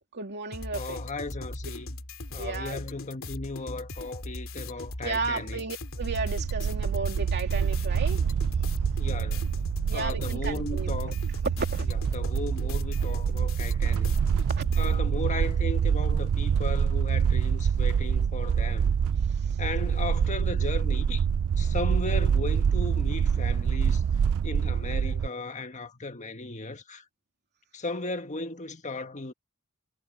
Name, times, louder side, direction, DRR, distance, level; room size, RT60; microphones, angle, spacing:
voice 1, 0.1-1.0 2.3-2.8 5.0-8.2 9.9-10.9 11.6-11.9 14.5-14.6 19.5-19.6, right 3 dB, 50° right, 2.8 m, -34 dB
sound 1, 0.5-14.9, left 1 dB, 65° left, 3.1 m, -39 dB
voice 2, 0.7-2.0 2.3-5.6 9.0-9.5 9.9-11.2 11.9-14.2 14.7-19.0 19.6-21.2 21.6-24.0 24.4-27.0 27.7-29.3, left 3 dB, 35° left, 1.6 m, -36 dB
sound 2, 6.0-25.3, right 7 dB, 70° right, 0.4 m, -26 dB
head